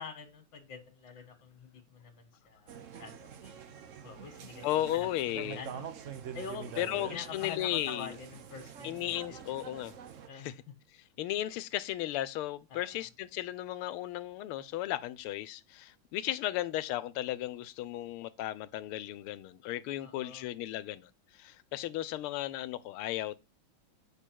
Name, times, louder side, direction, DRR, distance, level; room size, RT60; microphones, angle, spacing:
voice 1, 0.0-3.6 4.0-4.6 4.9-5.1 5.4-5.9 6.3-9.2 10.3-10.5 12.7-13.0 20.0-20.5, left 5 dB, 65° left, 2.1 m, -46 dB
sound 1, 2.7-10.3, right 7 dB, 60° right, 0.8 m, -45 dB
voice 2, 4.6-5.6 6.8-8.1 8.8-9.9 10.3-10.5 11.2-23.4, left 14 dB, 90° left, 1.5 m, -35 dB
8.4 x 5.7 x 4.5 m
omnidirectional pair, 2.3 m